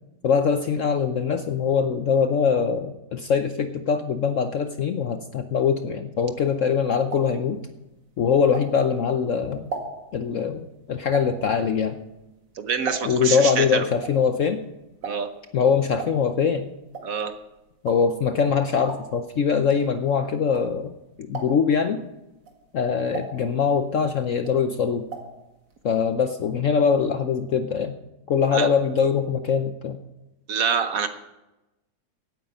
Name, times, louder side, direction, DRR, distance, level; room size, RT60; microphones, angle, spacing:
voice 1, 0.2-7.6 8.2-9.6 10.1-12.0 13.0-14.6 15.5-16.7 17.8-20.9 21.2-22.0 22.7-25.0 25.8-27.9 28.3-30.0, left 6 dB, 60° left, 8 dB, 0.8 m, -23 dB
sound 1, 6.6-9.1 9.5-13.4 13.7-21.0 21.3-21.8 22.3-24.0 24.3-25.4 25.7-25.8 26.0-26.1, right 4 dB, 85° right, 2.7 m, -38 dB
voice 2, 12.6-13.9 15.0-15.3 17.0-17.3 28.5-28.7 30.5-31.1, right 6 dB, 55° right, 9 dB, 1.2 m, -26 dB
16.5 x 9.1 x 5.5 m, 0.98 s
omnidirectional pair, 1.9 m